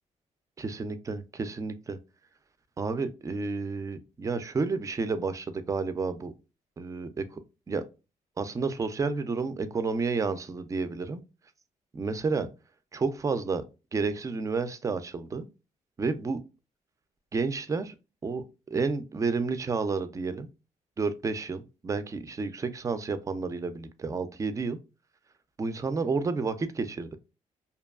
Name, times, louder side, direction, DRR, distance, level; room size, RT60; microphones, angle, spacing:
voice 1, 0.6-2.0 2.8-6.3 6.8-7.4 7.7-7.8 8.4-11.2 11.9-12.5 12.9-13.6 13.9-15.5 16.0-16.4 17.3-17.9 18.2-20.5 21.0-24.8 25.6-27.2, right 4 dB, 25° right, 0.3 m, -30 dB
2.7 x 2.2 x 2.2 m
cardioid pair, 105°, 14 cm